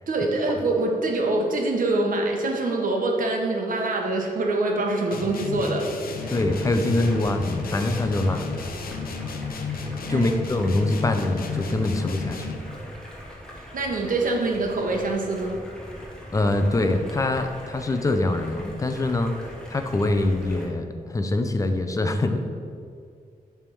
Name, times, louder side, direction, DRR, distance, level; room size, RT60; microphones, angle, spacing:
voice 1, 0.1-5.9 10.1-10.3 13.7-15.6, right 2 dB, 65° right, 1 dB, 1.1 m, -24 dB
sound 1, 5.1-12.8, left 5 dB, 85° left, 0.7 m, -32 dB
Stream, 6.2-20.7, equal, 5° left, 1.0 m, -42 dB
voice 2, 6.3-8.5 10.1-12.5 16.3-22.4, left 2 dB, 20° left, 6 dB, 0.5 m, -24 dB
7.2 x 3.5 x 6.1 m, 2.4 s
wide cardioid pair, 170°, 15 cm